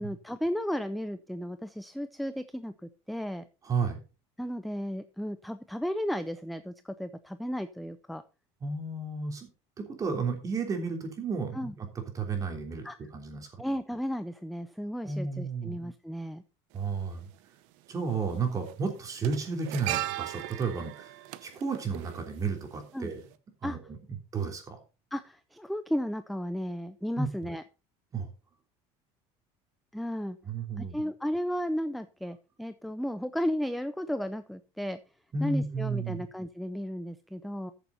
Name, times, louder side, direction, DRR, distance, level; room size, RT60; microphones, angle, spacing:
voice 1, 0.0-3.5 4.4-8.2 11.5-11.7 12.8-13.1 13.6-16.4 22.9-23.1 23.6-23.8 25.1-27.6 29.9-30.4 30.8-35.0 35.4-37.7, equal, ahead, 11 dB, 0.5 m, -34 dB
voice 2, 3.6-4.0 8.6-9.5 9.8-11.9 12.1-12.8 13.1-13.5 15.0-15.7 16.7-17.3 17.9-21.1 21.4-23.2 23.6-23.8 24.3-24.8 27.2-27.3 28.1-28.3 30.4-30.9 35.3-36.2, right 4 dB, 25° right, 4 dB, 3.3 m, -32 dB
sound 1, 16.7-16.8 18.1-18.3 18.6-22.9 23.2-23.3, right 15 dB, 80° right, 0.9 m, -37 dB
14.0 x 7.0 x 4.1 m, 0.32 s
cardioid pair, 145°, 13 cm